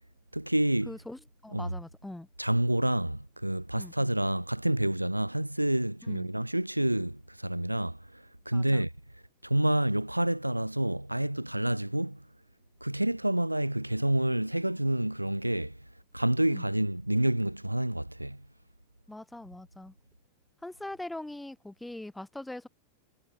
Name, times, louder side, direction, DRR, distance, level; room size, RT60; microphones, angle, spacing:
voice 1, 0.3-1.0 1.5-1.7 2.4-8.9 9.4-12.2 12.8-15.8 16.1-18.4, right 1 dB, 85° right, 0.3 m, -28 dB
voice 2, 0.9-2.3 3.8-3.9 6.1-6.3 8.5-8.8 16.5-16.7 19.1-19.9 20.6-22.7, left 1 dB, 5° left, 2.0 m, -42 dB
figure-of-eight pair, 90°, 0 cm